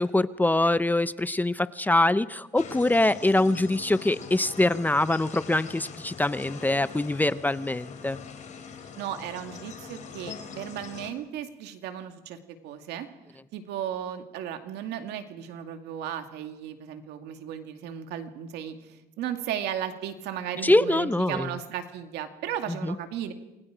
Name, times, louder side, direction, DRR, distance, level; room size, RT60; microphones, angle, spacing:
voice 1, 0.0-8.2 20.6-21.5 22.8-23.0, left 2 dB, 10° left, 15 dB, 0.6 m, -24 dB
sound 1, 2.6-11.1, left 6 dB, 45° left, 3.7 m, -43 dB
voice 2, 9.0-13.1 13.5-23.3, right 10 dB, 85° right, 6 dB, 2.3 m, -35 dB
28.0 x 21.5 x 5.0 m, 1.0 s
cardioid pair, 110°, 17 cm